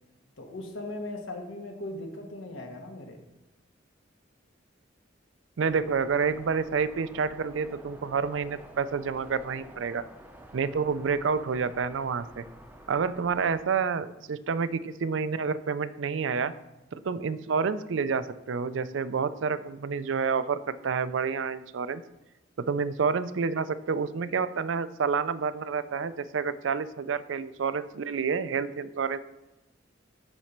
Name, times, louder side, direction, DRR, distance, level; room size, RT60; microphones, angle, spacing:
voice 1, 0.4-3.2, left 1 dB, 85° left, 2 dB, 1.5 m, -38 dB
voice 2, 5.6-10.0 10.5-12.4 12.9-16.5 16.9-22.0 22.7-29.2, right 5 dB, 80° right, 14 dB, 0.4 m, -29 dB
sound 1, 5.7-13.6, right 1 dB, 10° right, 0.6 m, -50 dB
10.5 x 4.2 x 4.5 m, 1.0 s
head